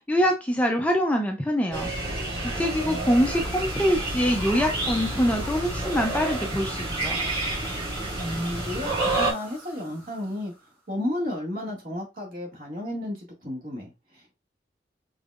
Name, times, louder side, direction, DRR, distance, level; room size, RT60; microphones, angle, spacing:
voice 1, 0.0-1.9 2.4-7.2, equal, 10° left, 2 dB, 0.5 m, -24 dB
sound 1, 1.7-9.3, right 2 dB, 30° right, 2.2 m, -29 dB
sound 2, 2.3-10.8, right 1 dB, 10° right, 1.9 m, -43 dB
voice 2, 2.5-3.3 3.7-3.8 8.2-10.5 10.9-14.4, left 1 dB, 50° right, -1 dB, 2.1 m, -33 dB
5.3 x 3.9 x 2.5 m, 0.24 s
head